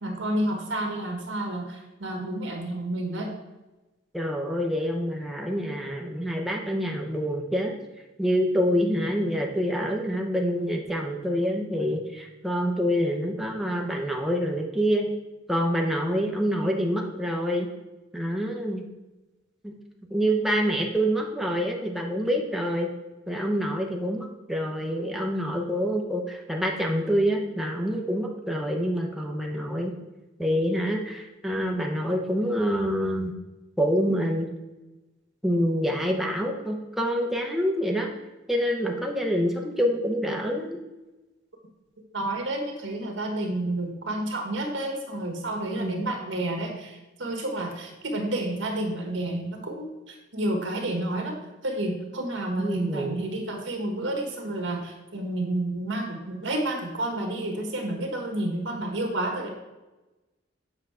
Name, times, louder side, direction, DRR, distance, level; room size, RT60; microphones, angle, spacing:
voice 1, 0.0-3.3 42.1-51.3 51.6-59.5, right 1 dB, 75° right, 1 dB, 1.5 m, -30 dB
voice 2, 4.1-7.8 8.2-15.1 15.5-17.7 18.1-18.8 19.6-19.7 20.1-22.9 23.3-29.9 30.4-33.3 33.8-34.5 35.4-38.1 38.5-40.8 45.7-46.0 52.6-53.2, equal, ahead, 0 dB, 0.6 m, -26 dB
7.9 x 5.5 x 3.6 m, 1.1 s
head